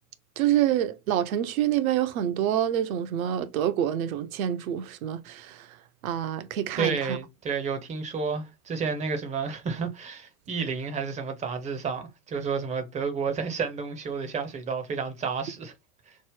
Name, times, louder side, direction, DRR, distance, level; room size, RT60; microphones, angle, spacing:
voice 1, 0.4-5.8 6.0-7.2, right 11 dB, 60° right, 0.6 m, -27 dB
voice 2, 6.8-15.7 16.1-16.2, right 5 dB, 15° right, 0.5 m, -31 dB
3.1 x 2.0 x 3.4 m
hypercardioid pair, 100°, 47 cm